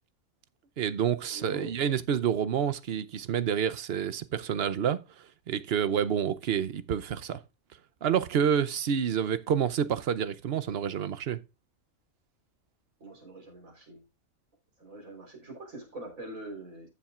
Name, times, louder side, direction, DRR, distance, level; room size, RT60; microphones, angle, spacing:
voice 1, 0.8-5.0 5.5-7.4 8.0-11.4, right 8 dB, 55° right, 0.8 m, -28 dB
voice 2, 1.3-1.7 13.0-14.0 14.8-16.9, right 2 dB, 80° right, 4.5 m, -43 dB
14.5 x 7.2 x 2.4 m
omnidirectional pair, 1.4 m